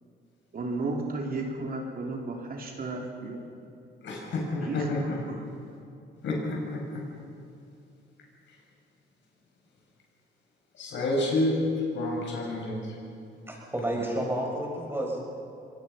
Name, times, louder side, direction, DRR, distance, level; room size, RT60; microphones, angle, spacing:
voice 1, 0.5-3.4 4.6-5.4, right 3 dB, 45° right, 1 dB, 3.5 m, -34 dB
voice 2, 4.0-5.2 6.2-7.0 10.8-11.6 11.9-12.8, left 1 dB, 70° left, -1 dB, 6.8 m, -29 dB
voice 3, 13.5-15.2, right 1 dB, 10° right, -2 dB, 6.8 m, -30 dB
24.0 x 20.0 x 5.8 m, 2.6 s
cardioid pair, 90°, 20 cm